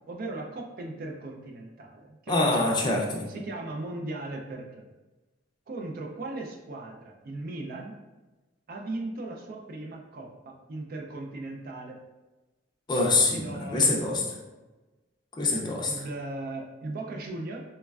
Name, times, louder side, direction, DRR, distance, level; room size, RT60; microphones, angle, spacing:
voice 1, 0.1-2.7 3.3-4.8 5.7-7.9 8.7-12.0 13.2-14.4 15.8-17.6, right 2 dB, 50° right, 1 dB, 0.4 m, -37 dB
voice 2, 2.3-3.2 12.9-14.2 15.4-15.9, left 2 dB, 25° left, -1 dB, 0.4 m, -25 dB
3.1 x 2.1 x 2.3 m, 1.1 s
head